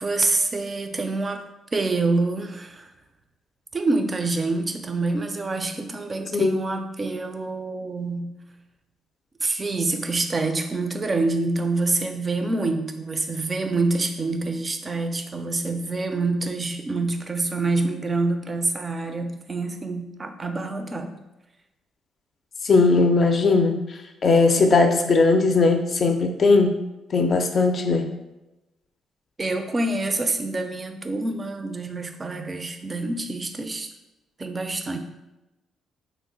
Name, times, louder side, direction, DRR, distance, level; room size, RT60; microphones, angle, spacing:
voice 1, 0.0-1.4 1.7-2.9 3.7-8.3 9.4-21.2 29.4-33.9 34.4-35.0, right 3 dB, 30° right, 6 dB, 0.4 m, -26 dB
voice 2, 22.6-23.7 24.2-26.7 27.1-28.0, left 3 dB, 45° left, 5 dB, 0.4 m, -18 dB
2.9 x 2.0 x 3.9 m, 0.98 s
cardioid pair, 90°, 0 cm